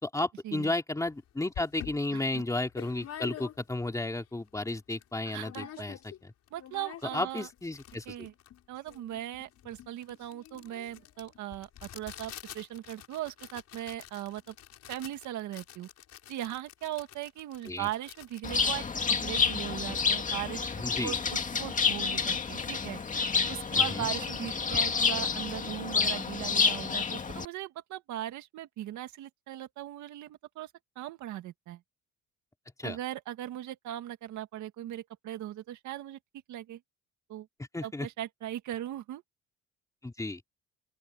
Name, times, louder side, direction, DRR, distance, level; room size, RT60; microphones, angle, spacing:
voice 1, 0.0-6.0 6.2-6.3 7.1-8.3 17.7-17.9 20.8-21.2 23.7-24.1 32.8-33.0 37.7-38.1 40.0-40.4, left 2 dB, 10° left, 3.1 m, -33 dB
sound 1, 1.1-1.2 1.5-3.9 4.3-4.4 4.6-5.1 5.4-6.2 6.5-19.5, left 11 dB, 60° left, 6.9 m, -48 dB
voice 2, 2.1-2.4 5.3-5.7 6.5-7.5 8.1-8.3 8.7-14.5 14.9-15.9 16.3-23.0 23.5-30.7 31.0-31.8 32.8-36.2 36.5-36.8 37.3-37.5 37.8-39.2, right 13 dB, 80° right, 1.9 m, -39 dB
Bird, 18.4-27.4, left 5 dB, 25° left, 2.1 m, -29 dB
open air
cardioid pair, 130°, 29 cm